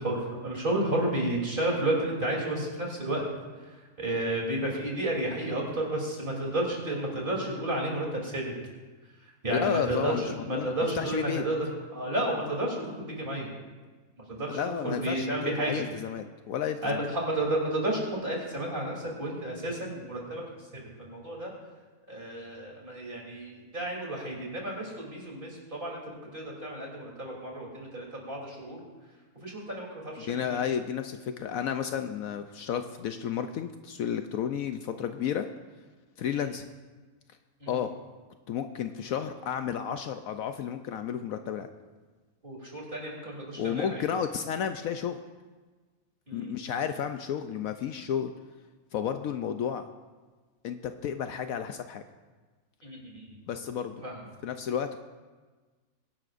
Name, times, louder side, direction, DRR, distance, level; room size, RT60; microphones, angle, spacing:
voice 1, 0.0-3.3 4.0-8.5 9.4-11.6 11.9-13.5 14.3-14.6 14.8-15.7 16.8-20.4 20.7-21.5 22.1-28.8 29.4-30.6 36.3-36.5 37.6-37.9 42.4-44.0 46.3-46.5 52.8-53.4 54.0-54.2, right 1 dB, 35° right, -2 dB, 3.3 m, -32 dB
voice 2, 9.5-11.4 14.4-17.1 30.2-35.5 36.2-36.7 37.7-37.9 38.5-41.7 43.6-45.2 46.3-48.3 48.9-49.9 50.6-52.0 53.5-54.1 54.4-55.0, left 8 dB, 70° left, 8 dB, 1.0 m, -32 dB
23.0 x 11.0 x 2.5 m, 1.3 s
omnidirectional pair, 1.6 m